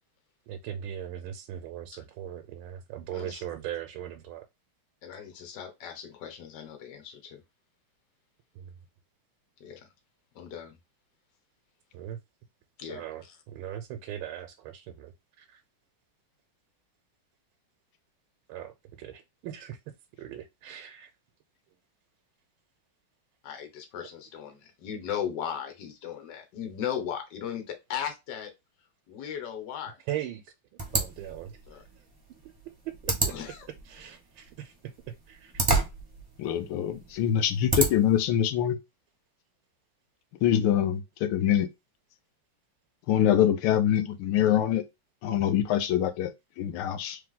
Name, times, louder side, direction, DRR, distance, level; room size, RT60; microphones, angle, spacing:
voice 1, 0.5-4.5 8.5-8.8 11.9-12.2 12.9-15.6 18.5-19.8 20.2-21.1 24.4-24.5 30.1-32.1 33.0-33.4 33.8-35.7, right 11 dB, 80° right, 1.4 m, -40 dB
voice 2, 5.0-7.4 9.6-9.9 10.3-10.8 12.8-13.0 23.4-28.5 29.1-30.0 31.7-31.8 33.3-33.5, left 9 dB, 60° left, 1.5 m, -37 dB
sound 1, 30.8-38.2, right 3 dB, 15° right, 0.8 m, -32 dB
voice 3, 36.4-38.8 40.4-41.7 43.1-44.9 45.2-47.2, left 10 dB, 90° left, 1.5 m, -24 dB
3.5 x 3.3 x 3.7 m
omnidirectional pair, 2.3 m